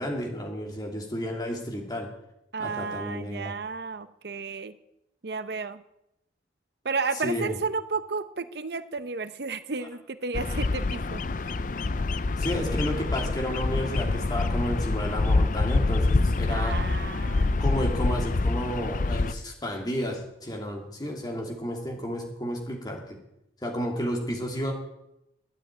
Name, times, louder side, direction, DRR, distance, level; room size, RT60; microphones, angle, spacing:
voice 1, 0.0-2.1 2.6-3.5 7.2-7.5 12.4-16.8 17.6-23.2 23.6-24.7, equal, 20° left, 1 dB, 2.9 m, -32 dB
voice 2, 2.5-4.7 5.2-5.8 6.8-11.5 16.5-17.6, right 4 dB, 65° right, 13 dB, 0.7 m, -32 dB
Bird vocalization bird call bird song, 10.3-19.3, left 3 dB, 45° left, 0.5 m, -26 dB
11.5 x 9.6 x 9.2 m, 0.84 s
head